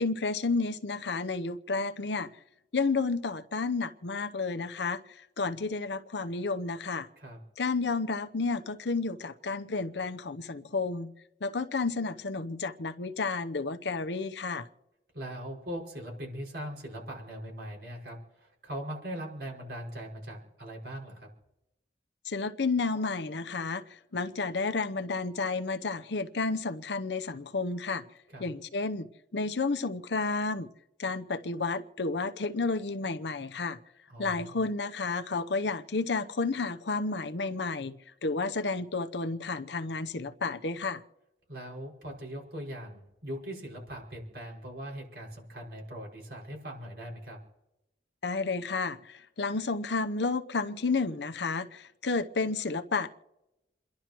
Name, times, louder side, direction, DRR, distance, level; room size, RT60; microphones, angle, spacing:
voice 1, 0.0-2.3 2.7-7.1 7.6-11.1 11.4-14.7 22.2-28.0 28.4-30.7 31.0-33.8 34.2-37.9 38.2-41.0 48.2-53.1, left 3 dB, 85° left, 9 dB, 0.8 m, -31 dB
voice 2, 15.1-21.3 28.3-28.5 34.1-34.6 41.5-47.4, equal, 70° right, -1 dB, 5.7 m, -40 dB
29.0 x 11.5 x 3.0 m, 0.91 s
head